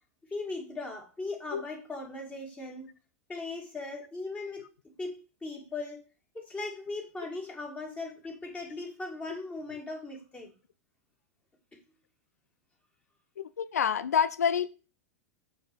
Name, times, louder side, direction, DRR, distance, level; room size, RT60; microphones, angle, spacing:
voice 1, 0.3-2.9 3.3-4.7 5.0-6.0 6.3-10.5, left 3 dB, 15° left, 2.4 m, -38 dB
voice 2, 13.4-14.7, left 7 dB, 85° left, 0.5 m, -27 dB
6.3 x 4.8 x 6.2 m
hypercardioid pair, 105°, 8 cm